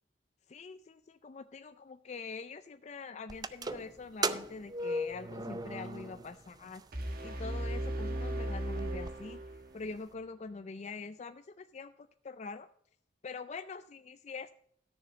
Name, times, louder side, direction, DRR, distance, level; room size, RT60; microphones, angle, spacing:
voice 1, 0.5-6.8 7.2-9.4 9.7-12.7 13.2-14.5, left 4 dB, 40° left, 10 dB, 0.4 m, -44 dB
sound 1, 3.3-6.4 6.7-6.8 7.7-7.8 8.2-8.3 8.5-9.1, right 2 dB, 20° right, 0.5 m, -36 dB
sound 2, 6.9-9.9, right 1 dB, 55° right, 1.3 m, -36 dB
13.0 x 6.8 x 5.1 m, 0.69 s
head